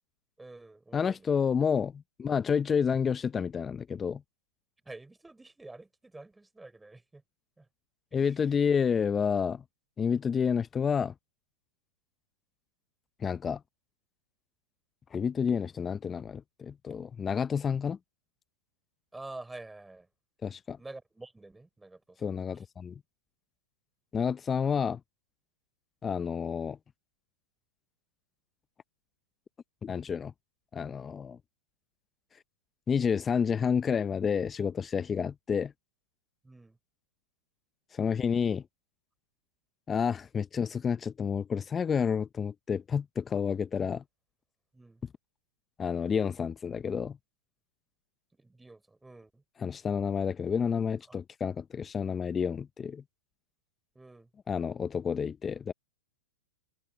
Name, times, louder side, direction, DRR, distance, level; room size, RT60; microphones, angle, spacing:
voice 1, 0.4-1.3 4.8-7.2 7.6-7.7 8.1-8.3 19.1-20.1 20.8-22.2 36.4-36.8 44.7-45.0 48.4-49.4 53.9-54.3, right 2 dB, 5° right, 4.4 m, -48 dB
voice 2, 0.9-4.2 8.1-9.6 10.0-11.1 13.2-13.6 15.1-18.0 20.4-20.8 22.2-23.0 24.1-25.0 26.0-26.8 29.8-30.3 30.7-31.4 32.9-35.7 37.9-38.7 39.9-44.0 45.8-47.2 49.6-53.0 54.5-55.7, left 6 dB, 20° left, 0.7 m, -29 dB
hypercardioid pair, 115°, 0 cm